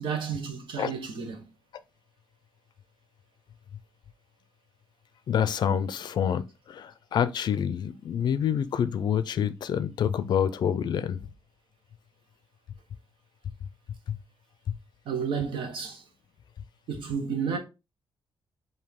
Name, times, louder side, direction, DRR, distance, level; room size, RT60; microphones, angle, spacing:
voice 1, 0.0-1.4 15.1-16.0 16.9-17.6, right 6 dB, 70° right, 1.1 m, -31 dB
voice 2, 5.3-6.4 6.7-11.2, left 8 dB, 55° left, 0.4 m, -27 dB
4.8 x 2.7 x 3.6 m
cardioid pair, 145°, 9 cm